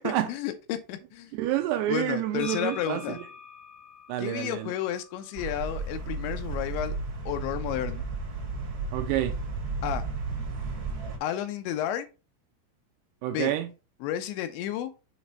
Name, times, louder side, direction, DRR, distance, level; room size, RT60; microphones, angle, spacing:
voice 1, 0.0-1.3 1.9-3.2 4.2-6.9 7.3-8.1 9.8-10.0 11.2-12.1 13.3-13.5 14.0-14.9, left 11 dB, 85° left, 3.1 m, -32 dB
voice 2, 1.3-3.2 4.1-4.7 8.9-9.4 13.2-13.7, right 12 dB, 80° right, 2.4 m, -28 dB
sound 1, 2.4-6.2, left 4 dB, 60° left, 1.7 m, -46 dB
sound 2, 5.4-11.2, right 4 dB, 45° right, 1.5 m, -33 dB
7.2 x 3.2 x 5.5 m
omnidirectional pair, 5.2 m